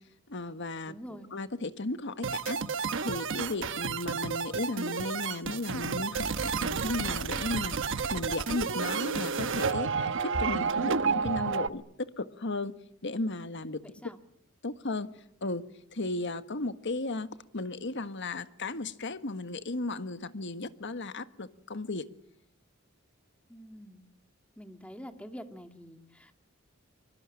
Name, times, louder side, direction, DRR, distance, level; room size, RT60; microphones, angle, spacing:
voice 1, 0.3-0.9 1.3-2.6 3.0-11.8 12.2-12.7 13.0-13.8 14.6-15.1 15.4-15.6 15.9-22.1, left 2 dB, 60° left, 11 dB, 1.6 m, -35 dB
voice 2, 0.9-1.3 14.0-14.2 23.5-24.0 24.6-26.3, equal, 5° left, 7 dB, 2.3 m, -46 dB
sound 1, 2.2-11.7, right 5 dB, 65° right, 1.1 m, -31 dB
25.0 x 24.0 x 10.0 m, 0.73 s
head